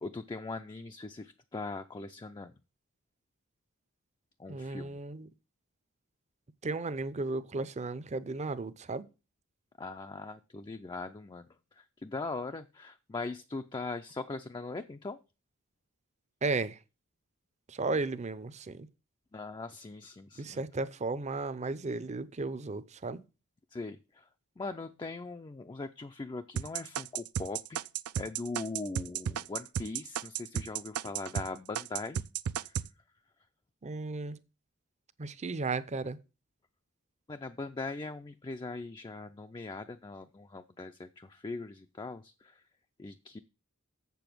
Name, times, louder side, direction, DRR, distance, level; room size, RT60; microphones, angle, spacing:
voice 1, 0.0-2.5 4.4-5.0 9.8-15.2 19.3-20.6 23.7-24.3 24.6-27.9 28.2-32.2 32.6-32.7 37.3-42.6 43.0-43.4, left 3 dB, 20° left, 0.4 m, -40 dB
voice 2, 4.5-5.3 6.6-9.0 16.4-16.8 17.7-18.9 20.4-23.2 33.8-34.4 35.2-36.2, right 3 dB, 30° right, 0.6 m, -34 dB
sound 1, 26.6-31.5 31.8-32.9, right 8 dB, 75° right, 0.4 m, -33 dB
7.6 x 7.0 x 6.0 m
head